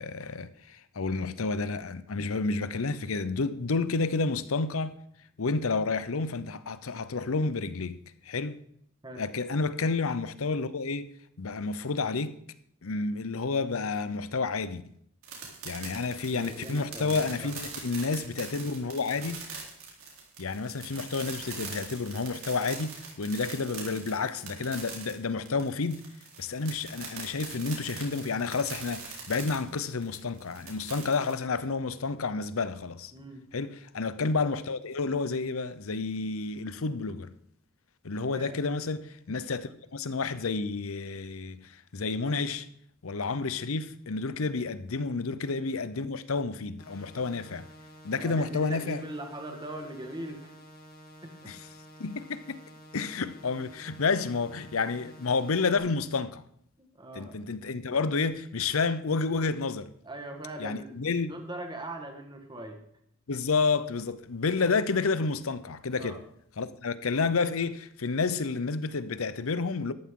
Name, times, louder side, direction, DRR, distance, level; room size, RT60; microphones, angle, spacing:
voice 1, 0.0-4.9 5.4-8.0 8.2-8.6 9.2-11.1 11.4-12.3 12.8-14.8 15.6-19.5 20.4-26.0 26.4-33.1 33.5-37.3 38.0-42.7 43.0-47.6 48.0-49.0 51.5-51.6 52.0-52.6 52.9-56.4 57.1-59.9 60.6-61.4 63.3-66.2 66.6-69.9, left 4 dB, 80° left, 0.8 m, -30 dB
sound 1, 15.2-31.3, right 5 dB, 85° right, 3.7 m, -42 dB
voice 2, 16.3-17.5 33.1-33.4 38.2-38.6 48.2-50.5 51.2-51.5 56.8-57.4 60.0-61.0 61.2-62.8 66.0-66.2, right 1 dB, 20° right, 1.6 m, -41 dB
sound 2, 46.8-55.8, equal, 45° left, 2.7 m, -51 dB
13.0 x 11.0 x 3.8 m
head